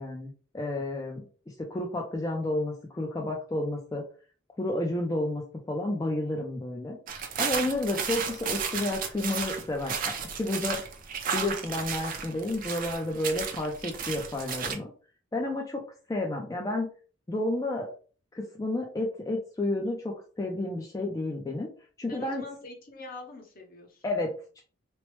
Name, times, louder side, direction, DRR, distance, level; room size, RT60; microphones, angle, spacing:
voice 1, 0.0-4.0 4.6-5.4 5.7-7.0 7.4-10.8 11.3-14.9 15.3-15.8 16.1-16.9 17.3-17.9 18.3-21.7 22.0-22.4 24.0-24.6, left 1 dB, 15° left, 0 dB, 0.4 m, -31 dB
sound 1, 7.1-14.8, right 6 dB, 45° right, 0.4 m, -33 dB
voice 2, 22.1-24.2, left 2 dB, 50° left, 1 dB, 0.8 m, -44 dB
3.0 x 2.0 x 3.1 m, 0.39 s
head